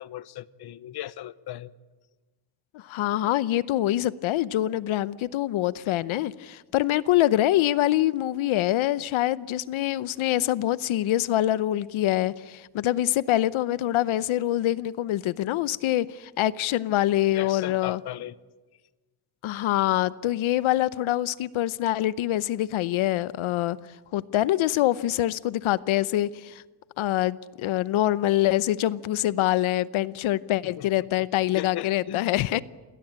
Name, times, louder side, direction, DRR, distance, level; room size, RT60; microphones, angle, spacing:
voice 1, 0.0-1.7 17.3-18.4 30.6-31.3 31.6-32.3, left 13 dB, 55° left, 17 dB, 0.8 m, -37 dB
voice 2, 2.7-18.0 19.4-23.8 24.1-26.6 27.0-32.6, left 14 dB, 75° left, 17 dB, 0.8 m, -25 dB
29.0 x 21.5 x 8.8 m, 1.3 s
cardioid pair, 145°, 48 cm